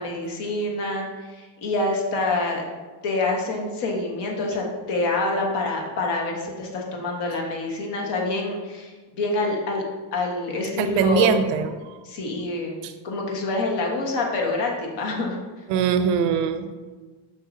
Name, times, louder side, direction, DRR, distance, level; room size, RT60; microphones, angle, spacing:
voice 1, 0.0-2.6 3.0-9.8 10.1-11.3 12.0-12.8 13.0-15.4, left 2 dB, 70° left, 0 dB, 1.5 m, -26 dB
voice 2, 10.8-12.0 12.8-12.9 15.7-16.7, right 6 dB, 85° right, 10 dB, 0.7 m, -22 dB
6.4 x 5.6 x 2.7 m, 1.3 s
cardioid pair, 135°, 43 cm